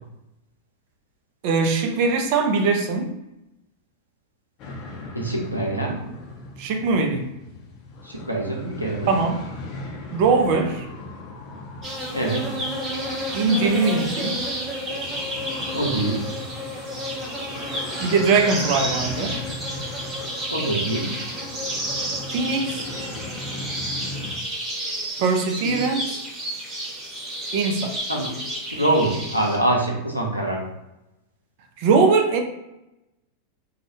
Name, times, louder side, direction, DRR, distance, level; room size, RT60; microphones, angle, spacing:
voice 1, 1.4-3.1 6.6-7.3 9.1-9.4 10.1-10.9 13.3-14.4 18.0-19.4 22.3-22.9 25.2-26.3 27.5-28.0 31.8-32.4, right 4 dB, 45° right, 0.4 m, -21 dB
sound 1, 4.6-24.4, left 2 dB, 40° left, 0.5 m, -38 dB
voice 2, 5.1-6.0 8.0-9.1 12.1-12.4 15.7-16.2 20.5-21.1 25.6-25.8 28.1-28.3 28.8-30.7, right 1 dB, 90° right, 0.6 m, -24 dB
sound 2, 11.8-29.6, equal, 20° right, 0.7 m, -31 dB
2.3 x 2.0 x 2.9 m
figure-of-eight pair, 90°, 0 cm